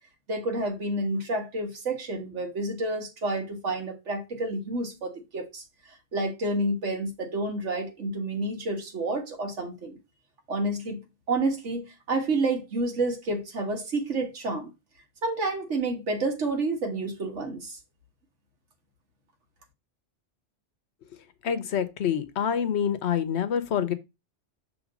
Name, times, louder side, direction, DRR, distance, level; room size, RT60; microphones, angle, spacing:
voice 1, 0.3-5.6 6.1-10.0 10.5-11.0 11.3-14.7 15.2-17.8, right 2 dB, 80° right, 1.8 m, -29 dB
voice 2, 21.4-23.9, left 8 dB, 70° left, 1.0 m, -26 dB
6.1 x 3.5 x 5.1 m
omnidirectional pair, 1.2 m